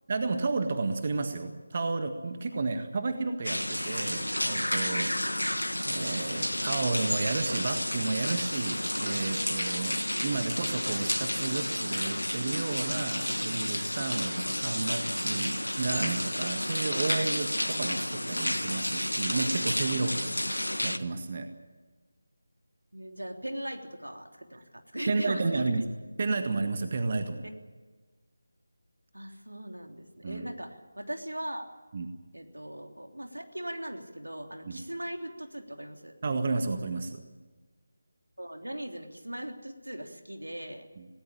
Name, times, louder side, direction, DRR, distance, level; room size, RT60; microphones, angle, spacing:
voice 1, 0.1-5.5 5.9-21.5 25.1-25.8 26.2-27.5 30.2-30.5 31.9-32.1 34.6-34.8 36.2-37.2 41.0-41.1, right 3 dB, 40° right, 7 dB, 1.7 m, -32 dB
sound 1, 3.4-21.0, left 1 dB, 90° left, 1.5 m, -31 dB
voice 2, 22.9-25.8 29.1-31.7 32.3-36.2 38.4-40.8, right 1 dB, 85° right, 4 dB, 3.3 m, -39 dB
18.5 x 18.0 x 8.8 m, 1.4 s
figure-of-eight pair, 160°, 0 cm